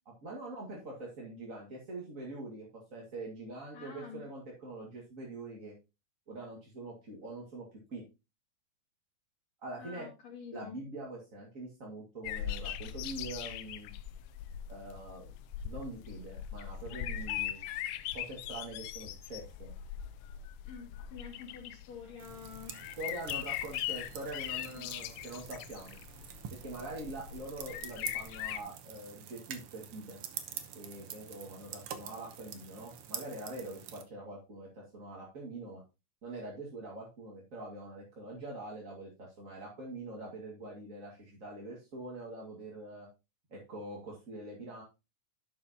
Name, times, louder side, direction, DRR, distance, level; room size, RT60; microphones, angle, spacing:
voice 1, 0.2-5.7 6.3-8.0 9.6-10.1 10.5-13.9 14.7-15.3 15.6-17.6 18.1-19.7 23.0-26.0 26.6-30.2 30.7-35.8 36.2-43.1 43.5-44.8, right 2 dB, 30° right, -3 dB, 1.9 m, -44 dB
voice 2, 3.7-4.2 9.8-10.8 20.6-22.8 24.7-24.9, left 6 dB, 55° left, -4 dB, 3.2 m, -47 dB
sound 1, 12.2-28.6, left 11 dB, 80° left, 2.2 m, -40 dB
sound 2, 22.2-34.0, right 9 dB, 85° right, 1.2 m, -47 dB
11.0 x 7.1 x 2.8 m, 0.27 s
omnidirectional pair, 3.8 m